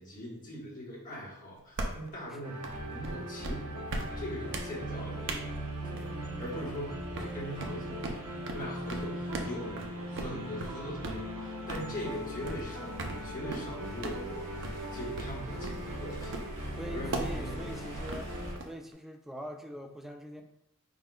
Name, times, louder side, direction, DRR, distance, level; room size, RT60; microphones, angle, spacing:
voice 1, 0.0-2.6 2.9-8.1 8.5-9.8 10.1-17.6, equal, 40° left, -5 dB, 1.3 m, -41 dB
sound 1, 1.8-2.1 2.6-2.8 3.0-3.1 3.4-3.6 3.9-4.1 4.5-4.7 5.3-5.4 6.0-6.1 6.4-6.7 7.2-7.3 7.6-7.7 8.0-8.2 8.5-8.6 8.9-9.0 9.3-9.5 9.8-9.9 10.2-10.3 10.6-10.8 11.0-11.2 11.7-11.9 12.5-12.6 13.0-13.2 13.5-13.7 14.0-14.2 14.6-14.8 15.2-15.3 15.6-15.8 16.3-16.5 17.1-17.3 18.1-18.9, right 2 dB, 55° right, 0.6 m, -37 dB
sound 2, 2.4-18.6, equal, 80° right, 0.8 m, -39 dB
Waves surf, 11.9-18.5, equal, 15° left, 0.9 m, -47 dB
voice 2, 16.8-18.3 18.6-20.4, equal, ahead, 3 dB, 0.3 m, -42 dB
4.7 x 3.7 x 2.3 m, 0.78 s
head